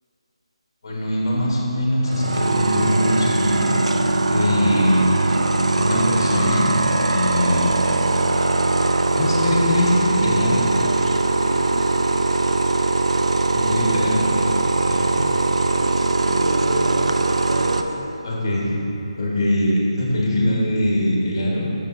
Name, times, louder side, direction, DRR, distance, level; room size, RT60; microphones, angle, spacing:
voice 1, 0.8-3.8 4.2-5.3 5.7-6.7 7.1-7.7 9.1-10.6 13.5-14.3 14.8-15.0 18.2-18.8 19.2-21.6, left 1 dB, 45° left, -4 dB, 1.5 m, -22 dB
sound 1, 2.1-17.8, right 2 dB, 90° right, 0.4 m, -20 dB
voice 2, 11.4-12.1 15.0-15.4 15.7-18.1, equal, 65° right, -4 dB, 1.5 m, -31 dB
7.7 x 6.6 x 2.6 m, 3.0 s
figure-of-eight pair, 165°, 3 cm